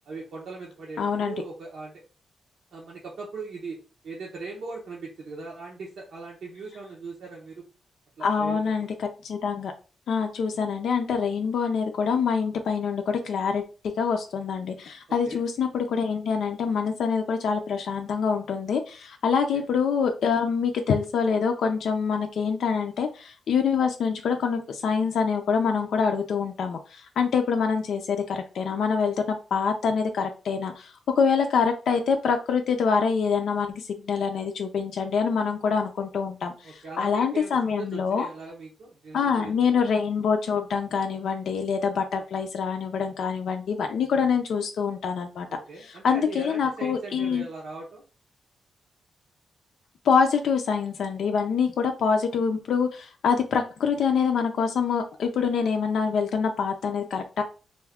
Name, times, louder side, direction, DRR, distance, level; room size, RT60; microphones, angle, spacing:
voice 1, 0.1-2.0 2.7-3.8 4.0-7.7 8.2-8.9 15.2-15.4 19.5-19.7 36.6-39.8 45.5-48.0, right 3 dB, 75° right, -4 dB, 0.8 m, -39 dB
voice 2, 1.0-1.4 8.2-9.7 10.1-13.6 14.0-38.3 39.1-45.5 46.0-47.4 50.0-57.4, left 6 dB, 80° left, 4 dB, 0.4 m, -25 dB
2.5 x 2.3 x 3.5 m, 0.34 s
cardioid pair, 100°, 0 cm